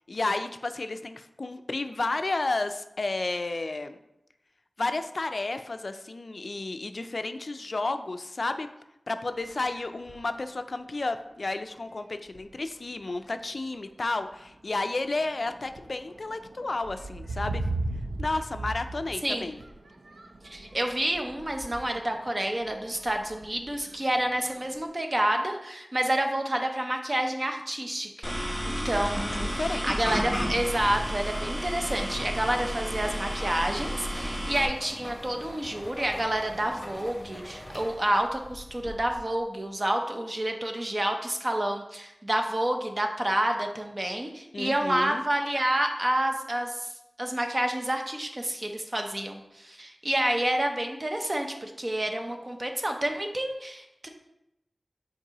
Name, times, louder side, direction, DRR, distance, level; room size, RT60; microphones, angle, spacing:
voice 1, 0.1-4.0 4.8-8.7 9.1-17.6 18.2-19.6 28.6-29.1 29.4-30.2 44.5-45.2, left 2 dB, 60° left, 9 dB, 0.3 m, -32 dB
sound 1, 9.3-10.4 11.1-11.2 11.7-12.0 12.3-12.9 13.6-13.8 14.2-24.9, right 2 dB, 85° right, 0.5 m, -39 dB
voice 2, 20.4-28.3 28.6-46.9 47.2-54.1, right 1 dB, 35° right, 4 dB, 0.7 m, -29 dB
sound 2, 28.2-34.7, equal, 10° right, 1.0 m, -31 dB
sound 3, 30.1-39.4, left 1 dB, 25° left, 1.2 m, -43 dB
7.2 x 4.6 x 2.9 m, 0.87 s
wide cardioid pair, 75°, 0 cm